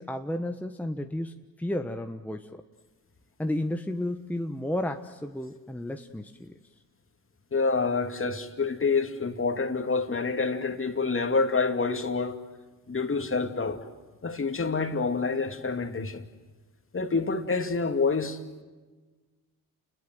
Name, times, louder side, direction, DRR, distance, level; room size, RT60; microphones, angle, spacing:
voice 1, 0.0-2.6 3.4-6.5, left 1 dB, 5° left, 1.2 m, -32 dB
voice 2, 7.5-12.4 12.9-13.8 14.2-16.3 16.9-18.6, left 4 dB, 30° left, 2.5 m, -27 dB
29.0 x 21.0 x 7.9 m
supercardioid pair, 65°, 40 cm